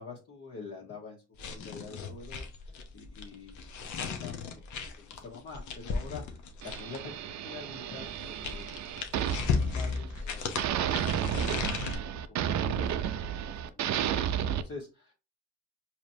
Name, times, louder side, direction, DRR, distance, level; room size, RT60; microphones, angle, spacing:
voice 1, 0.0-8.7 9.3-13.4 13.7-15.1, left 4 dB, 50° left, -4 dB, 1.2 m, -47 dB
sound 1, 1.3-7.1 8.0-12.0, left 5 dB, 75° left, 0.9 m, -35 dB
sound 2, 6.6-10.2 10.6-14.6, right 9 dB, 65° right, 0.5 m, -32 dB
4.8 x 2.9 x 2.7 m, 0.30 s
cardioid pair, 90°, 30 cm